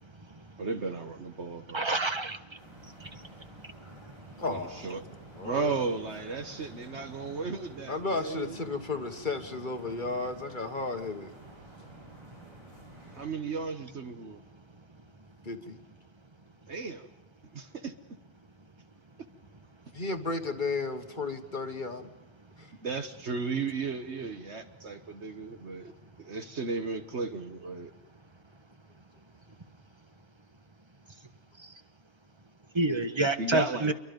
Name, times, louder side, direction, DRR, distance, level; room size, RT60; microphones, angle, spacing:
voice 1, 0.6-1.9 4.5-5.0 5.4-8.6 13.1-14.4 16.7-17.1 17.5-17.9 22.8-25.9 26.2-27.9 33.4-33.9, right 4 dB, 55° right, 7 dB, 1.5 m, -35 dB
voice 2, 1.7-2.4 3.0-3.2 32.7-33.9, right 2 dB, 20° right, 8 dB, 1.2 m, -28 dB
sound 1, 2.5-13.3, right 1 dB, 90° right, 8.0 m, -52 dB
voice 3, 4.4-5.0 5.4-5.7 7.9-11.3 15.4-15.8 19.9-22.1 22.6-22.7, left 3 dB, 40° left, 6 dB, 1.6 m, -34 dB
28.0 x 23.5 x 5.3 m, 0.99 s
omnidirectional pair, 1.4 m